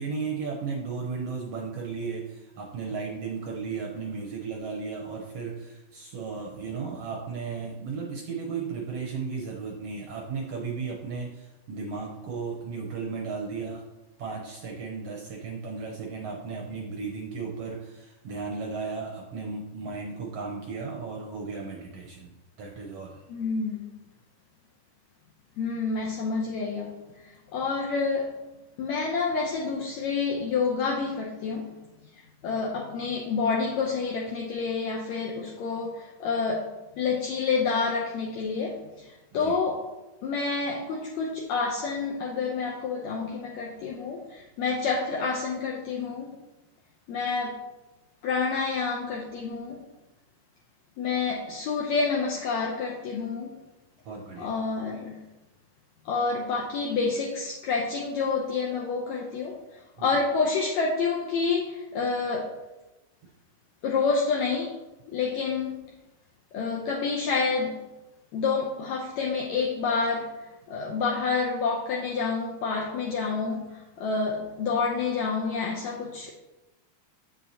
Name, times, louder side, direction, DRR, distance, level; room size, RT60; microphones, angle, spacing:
voice 1, 0.0-13.8 14.2-23.2 39.3-39.6 54.0-54.6 60.0-60.2, right 5 dB, 75° right, -1 dB, 1.5 m, -35 dB
voice 2, 23.3-23.9 25.6-26.9 27.5-28.3 28.8-31.8 32.4-39.1 39.3-39.8 40.2-46.3 47.1-47.6 48.2-49.8 51.0-53.5 54.4-55.1 56.1-59.6 60.0-62.6 63.8-64.8 65.1-65.7 66.5-67.8 68.3-70.3 70.7-76.3, left 4 dB, 75° left, -2 dB, 1.8 m, -28 dB
7.9 x 7.2 x 2.8 m, 1.0 s
omnidirectional pair, 3.7 m